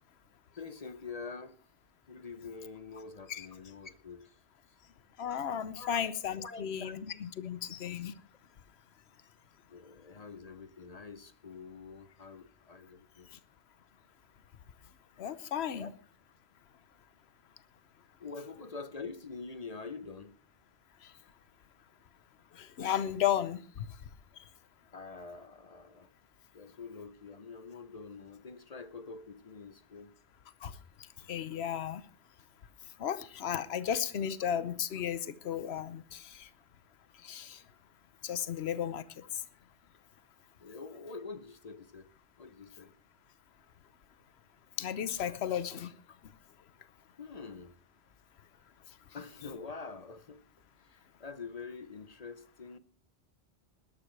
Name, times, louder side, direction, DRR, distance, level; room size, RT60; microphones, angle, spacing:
voice 1, 0.6-1.6 2.1-4.4 5.6-6.1 6.4-6.9 9.7-13.3 15.8-15.9 18.2-20.4 24.9-26.1 26.5-30.1 40.6-42.1 42.4-43.0 47.2-47.8 49.1-50.4 50.8-52.8, left 4 dB, 40° left, 0.7 m, -46 dB
voice 2, 5.2-8.1 15.2-15.9 22.6-23.9 30.6-30.7 31.3-32.0 33.0-36.5 37.2-37.6 38.2-39.0 44.8-45.9, left 9 dB, 70° left, 1.1 m, -34 dB
20.0 x 12.5 x 3.2 m
omnidirectional pair, 1.1 m